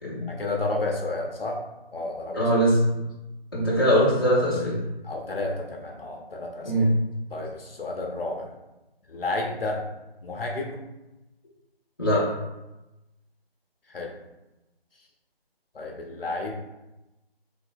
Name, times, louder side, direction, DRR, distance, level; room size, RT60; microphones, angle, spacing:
voice 1, 0.3-1.6 1.9-2.4 5.0-6.9 7.3-8.5 9.1-9.8 10.2-10.8 13.9-14.2 15.7-16.5, left 2 dB, 70° left, 0 dB, 0.6 m, -31 dB
voice 2, 2.3-2.8 3.5-4.8 6.6-6.9 12.0-12.3, equal, 25° left, -8 dB, 0.6 m, -21 dB
3.1 x 2.7 x 2.5 m, 0.99 s
figure-of-eight pair, 165°, 31 cm